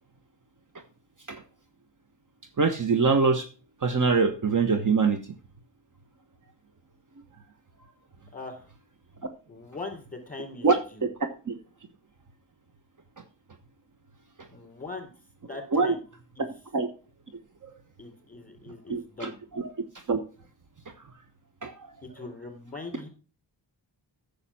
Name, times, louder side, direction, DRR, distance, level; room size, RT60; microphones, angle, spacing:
voice 1, 2.6-3.5 3.8-5.2 9.2-9.3 10.6-11.6 15.7-15.9 16.7-16.9 17.6-17.7 18.9-19.7 20.1-20.2 21.6-21.9, right 4 dB, 40° right, 8 dB, 1.1 m, -24 dB
voice 2, 8.3-8.7 9.5-11.0 14.5-15.1 15.5-16.0 16.4-16.5 18.0-19.4 22.0-23.1, left 3 dB, 20° left, 3 dB, 3.9 m, -41 dB
9.7 x 6.6 x 5.7 m, 0.37 s
wide cardioid pair, 90°, 45 cm